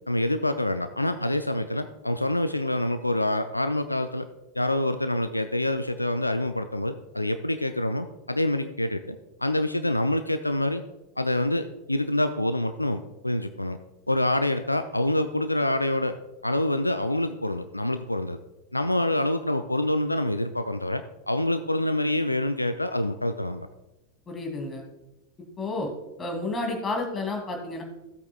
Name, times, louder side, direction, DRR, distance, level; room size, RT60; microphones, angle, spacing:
voice 1, 0.1-4.3 4.5-10.8 11.2-13.8 14.1-16.2 16.4-18.4 18.7-23.7, left 1 dB, 85° left, 9 dB, 0.4 m, -26 dB
voice 2, 24.3-24.8 25.6-25.9 26.2-27.8, left 2 dB, 20° left, 2 dB, 2.6 m, -30 dB
16.0 x 8.2 x 2.3 m, 0.99 s
figure-of-eight pair, 90°, 0 cm